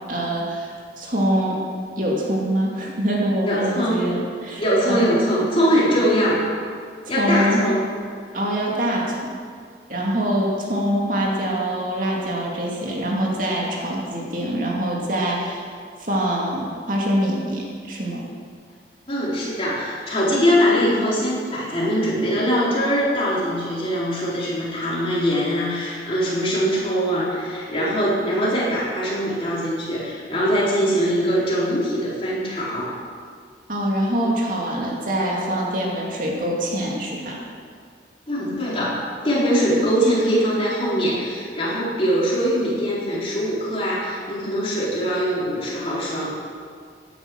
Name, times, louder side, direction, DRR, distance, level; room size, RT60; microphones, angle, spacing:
voice 1, 0.1-1.6 2.0-5.0 7.1-7.6 8.3-9.3 9.9-15.7 16.0-18.2 33.7-37.4, right 1 dB, 45° right, -2 dB, 2.5 m, -24 dB
voice 2, 3.4-4.0 4.6-6.4 7.1-7.8 19.1-32.9 38.3-39.0 39.2-46.3, equal, 30° left, -6 dB, 4.1 m, -22 dB
16.5 x 10.0 x 6.3 m, 2.1 s
head